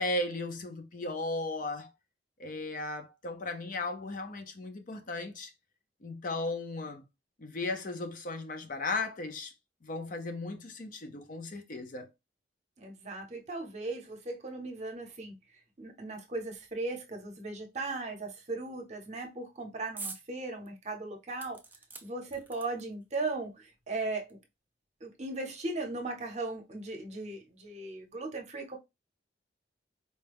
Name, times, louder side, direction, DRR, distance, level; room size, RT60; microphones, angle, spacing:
voice 1, 0.0-1.9 2.4-5.5 6.0-7.0 7.4-9.5 9.8-12.1, left 2 dB, 50° left, 0.6 m, -36 dB
voice 2, 12.8-15.3 15.8-21.6 22.0-24.4 25.0-28.8, right 2 dB, 40° right, 0.8 m, -37 dB
sound 1, 20.0-20.3 20.7-20.8 21.4-23.0 23.9-24.0 24.3-24.4, right 4 dB, 10° right, 0.4 m, -44 dB
4.2 x 2.2 x 3.4 m
head